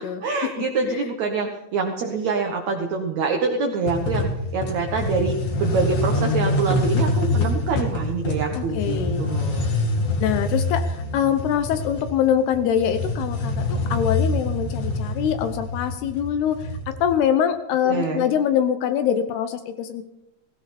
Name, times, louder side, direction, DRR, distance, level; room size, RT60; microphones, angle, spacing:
voice 1, 0.0-9.7 17.8-18.3, right 4 dB, 70° right, 2 dB, 1.7 m, -26 dB
sound 1, 3.9-17.1, left 2 dB, 45° left, 2.6 m, -25 dB
voice 2, 8.5-9.2 10.2-16.6 17.0-20.0, left 9 dB, 75° left, 9 dB, 2.6 m, -23 dB
17.0 x 16.5 x 4.2 m, 0.94 s
omnidirectional pair, 5.2 m